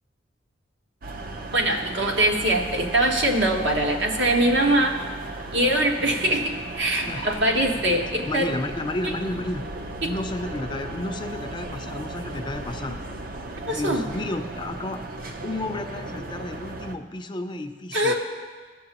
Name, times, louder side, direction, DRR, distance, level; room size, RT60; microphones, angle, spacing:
sound 1, 1.0-16.9, right 2 dB, 50° right, 0.6 m, -36 dB
voice 1, 1.5-5.0 5.5-8.5 9.0-9.1 10.0-10.1 13.7-14.0 17.9-18.1, right 1 dB, 70° right, 1 dB, 1.2 m, -22 dB
voice 2, 8.3-9.6 10.0-13.0 13.7-15.0 15.4-18.1, left 2 dB, 25° left, 7 dB, 0.5 m, -31 dB
16.0 x 6.9 x 2.9 m, 1.5 s
head